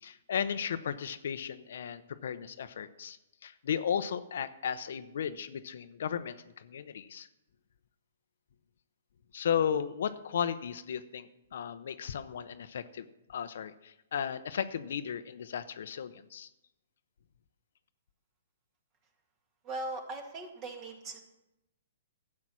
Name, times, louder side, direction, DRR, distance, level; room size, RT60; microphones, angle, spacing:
voice 1, 0.0-7.3 9.3-16.5, left 8 dB, 65° left, 11 dB, 0.7 m, -35 dB
voice 2, 19.6-21.2, right 2 dB, 25° right, 5 dB, 1.9 m, -39 dB
12.0 x 8.5 x 6.2 m, 0.92 s
hypercardioid pair, 155°, 0 cm